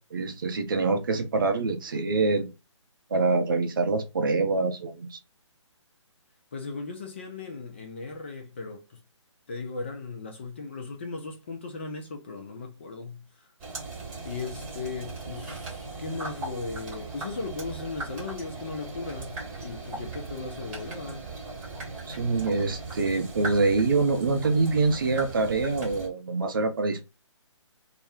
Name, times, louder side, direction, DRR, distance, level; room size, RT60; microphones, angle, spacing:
voice 1, 0.0-2.5 3.1-5.2 22.1-27.1, right 3 dB, 45° right, 0.5 m, -25 dB
voice 2, 6.5-9.0 9.5-13.5 14.2-21.3, left 4 dB, 25° left, 0.4 m, -37 dB
sound 1, 13.6-26.1, right 3 dB, 20° right, 0.9 m, -38 dB
2.4 x 2.1 x 3.3 m
figure-of-eight pair, 140°, 16 cm